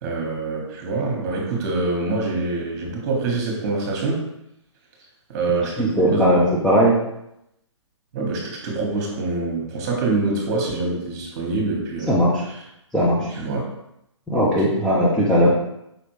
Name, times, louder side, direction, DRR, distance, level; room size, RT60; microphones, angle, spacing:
voice 1, 0.0-4.3 5.3-6.4 8.1-12.6 13.2-13.6 14.4-14.7, right 3 dB, 35° right, -1 dB, 1.4 m, -25 dB
voice 2, 5.8-7.0 12.1-12.3 12.9-13.3 14.3-15.6, equal, 5° left, -8 dB, 0.6 m, -18 dB
5.2 x 3.2 x 3.2 m, 0.83 s
figure-of-eight pair, 130°, 16 cm